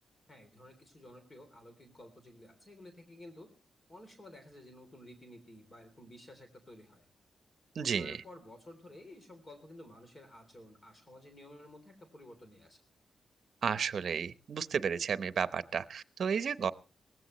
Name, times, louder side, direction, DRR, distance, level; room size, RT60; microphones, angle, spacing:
voice 1, 0.3-3.5 3.9-7.1 7.7-12.8, left 1 dB, 30° left, 7 dB, 3.3 m, -53 dB
voice 2, 7.7-8.2 13.6-16.7, right 6 dB, 65° right, 14 dB, 0.8 m, -32 dB
19.0 x 16.0 x 3.1 m, 0.35 s
cardioid pair, 105°, 0 cm